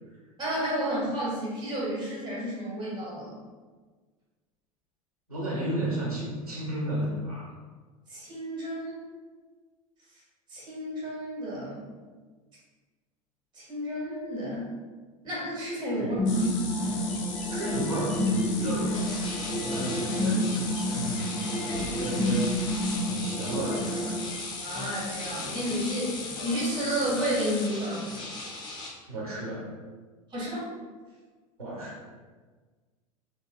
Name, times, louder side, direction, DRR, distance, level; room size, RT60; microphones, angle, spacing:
voice 1, 0.4-3.4 8.1-9.0 10.5-11.8 13.5-14.7 15.2-16.7 24.6-28.2 30.3-30.7, equal, 25° right, -6 dB, 1.4 m, -31 dB
voice 2, 5.3-7.5 16.0-16.2 17.5-22.5 23.1-24.1 29.1-29.7 31.6-32.0, right 1 dB, 85° right, -6 dB, 1.0 m, -33 dB
sound 1, 16.2-24.2, equal, 5° right, 0.4 m, -29 dB
sound 2, 16.3-27.7, left 4 dB, 60° left, 0.5 m, -38 dB
sound 3, 18.9-28.9, left 2 dB, 25° left, 0.8 m, -41 dB
3.7 x 2.2 x 2.2 m, 1.4 s
figure-of-eight pair, 75°, 18 cm